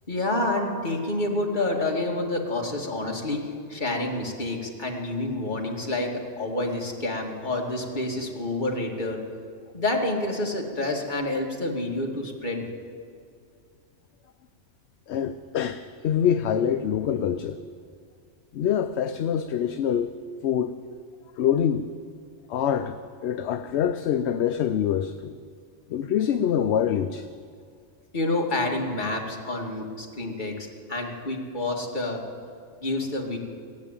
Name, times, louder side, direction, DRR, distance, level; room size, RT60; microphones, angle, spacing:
voice 1, 0.1-9.2 9.7-12.7 28.1-30.6 30.9-32.2 32.8-33.4, left 2 dB, 40° left, 0 dB, 2.1 m, -28 dB
voice 2, 15.1-17.6 18.5-20.1 20.4-20.7 21.4-21.9 22.5-25.4 25.9-27.3, left 9 dB, 70° left, 9 dB, 0.8 m, -25 dB
15.5 x 10.5 x 8.8 m, 2.3 s
omnidirectional pair, 1.2 m